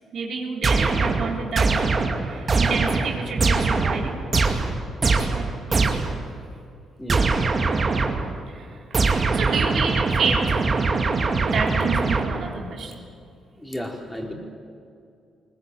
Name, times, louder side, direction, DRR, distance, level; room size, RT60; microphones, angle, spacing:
voice 1, 0.1-1.8 2.3-4.2 5.0-5.9 8.5-8.8 9.3-10.6 11.5-13.0, right 5 dB, 60° right, 1 dB, 3.3 m, -29 dB
sound 1, 0.6-6.3 7.1-8.4 8.9-12.6, right 4 dB, 35° right, 2.4 m, -22 dB
voice 2, 7.0-7.5 13.5-14.3, equal, 10° left, 0 dB, 4.5 m, -33 dB
21.5 x 19.5 x 9.5 m, 2.4 s
cardioid pair, 90°, 0 cm